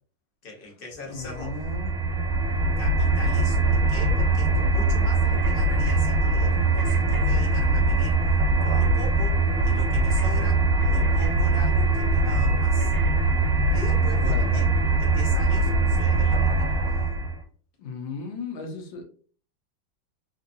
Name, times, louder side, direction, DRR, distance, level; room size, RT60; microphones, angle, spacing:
voice 1, 0.4-1.7 2.8-8.3 8.6-12.9 13.7-14.7 15.0-16.8, left 2 dB, 45° left, 0.8 m, -40 dB
voice 2, 1.1-1.9 14.2-14.7 17.8-19.0, left 4 dB, 80° left, 1.5 m, -35 dB
sound 1, 1.2-17.4, right 2 dB, 70° right, 1.4 m, -22 dB
3.7 x 2.7 x 2.5 m
omnidirectional pair, 2.1 m